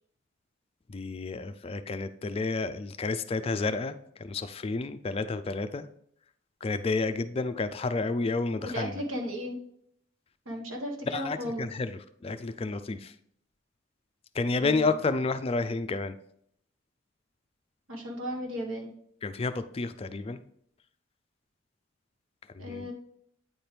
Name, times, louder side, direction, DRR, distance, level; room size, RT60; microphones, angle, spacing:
voice 1, 0.9-5.9 6.6-9.0 11.1-13.2 14.3-16.2 19.2-20.4 22.5-22.9, left 3 dB, 30° left, 11 dB, 0.3 m, -30 dB
voice 2, 8.5-9.6 10.4-11.7 14.6-14.9 17.9-18.9 22.6-22.9, equal, 80° right, 1 dB, 1.5 m, -35 dB
9.0 x 4.4 x 3.3 m, 0.68 s
head